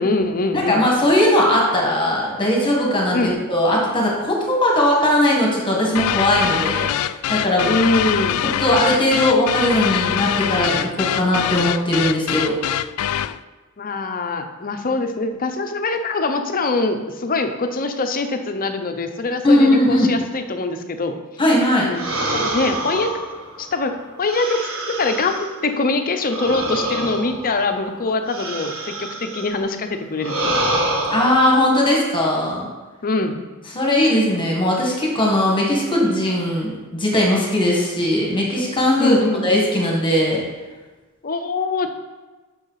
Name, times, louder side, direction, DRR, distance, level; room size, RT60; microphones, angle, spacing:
voice 1, 0.0-0.8 3.1-3.4 7.6-8.4 13.8-21.1 21.8-22.1 22.3-23.1 23.6-24.6 24.9-30.7 33.0-33.4 39.0-39.5 41.2-41.9, left 3 dB, 40° left, 6 dB, 0.7 m, -23 dB
voice 2, 0.5-6.9 7.3-7.7 8.4-12.6 19.4-20.2 21.4-21.9 31.1-32.7 33.7-39.2 39.4-40.4, left 1 dB, 25° left, -2 dB, 1.7 m, -19 dB
sound 1, 5.9-13.4, left 11 dB, 75° left, 0.3 m, -23 dB
sound 2, 21.9-25.6 26.2-29.6 30.2-31.6, right 1 dB, 65° right, 1.5 m, -26 dB
7.0 x 6.3 x 5.7 m, 1.2 s
head